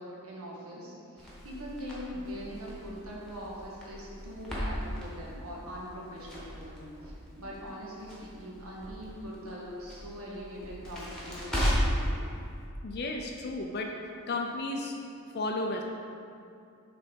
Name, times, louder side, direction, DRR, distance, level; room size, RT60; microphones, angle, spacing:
voice 1, 0.0-12.1, equal, 75° right, -4 dB, 1.5 m, -42 dB
Crackle, 1.2-12.1, equal, 5° left, 1.3 m, -36 dB
voice 2, 12.8-13.9 14.3-15.0 15.3-15.8, left 2 dB, 45° left, 2 dB, 0.4 m, -33 dB
6.5 x 4.0 x 5.2 m, 2.5 s
head